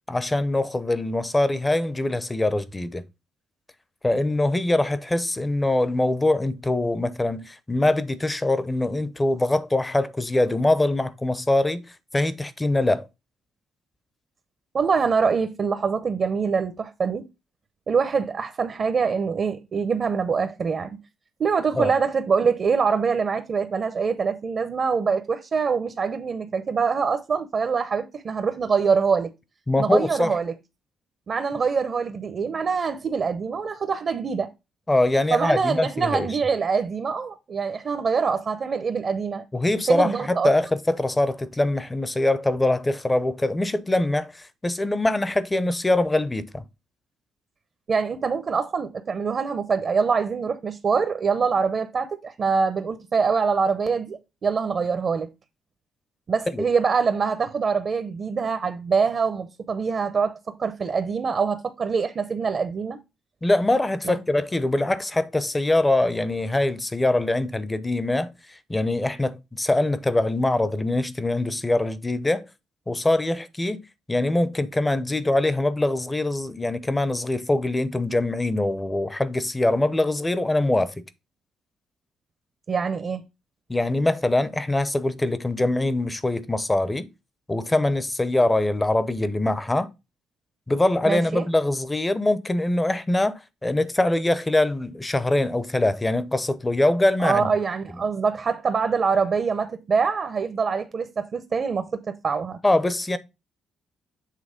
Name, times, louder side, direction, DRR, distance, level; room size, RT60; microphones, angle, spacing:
voice 1, 0.1-3.0 4.0-11.8 12.1-13.1 21.8-21.9 29.7-30.3 34.9-36.3 39.5-46.6 56.5-56.7 63.4-72.4 72.9-73.8 74.1-80.9 83.7-87.1 87.5-89.9 90.7-97.5 102.6-103.2, left 2 dB, 15° left, 0.7 m, -23 dB
voice 2, 14.7-17.3 17.9-21.0 21.4-29.3 29.8-30.5 31.3-34.5 35.3-39.4 39.9-40.5 47.9-55.3 56.3-63.0 64.0-64.2 82.7-83.2 91.0-91.5 97.2-102.6, right 5 dB, 45° right, 0.7 m, -24 dB
7.6 x 3.1 x 5.0 m
cardioid pair, 90°, 0 cm